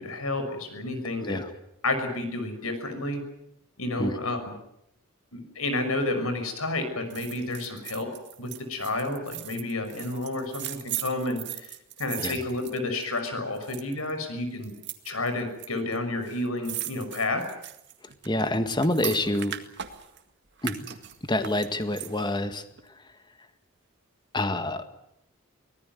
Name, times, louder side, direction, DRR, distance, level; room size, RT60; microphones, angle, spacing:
voice 1, 0.0-1.4 1.8-3.2 3.8-4.4 5.3-8.1 8.4-11.7 12.0-14.7 15.0-17.4, left 2 dB, 85° left, 8 dB, 6.2 m, -30 dB
sound 1, 7.1-13.3 13.6-14.1 14.6-15.7 15.9-16.0 16.2-20.2 20.6-22.4 22.8-22.9, right 12 dB, 55° right, 2.0 m, -38 dB
voice 2, 18.2-19.6 20.6-20.9 21.3-22.6 24.3-24.8, left 1 dB, 20° left, 9 dB, 1.8 m, -27 dB
24.0 x 19.0 x 9.4 m, 0.80 s
head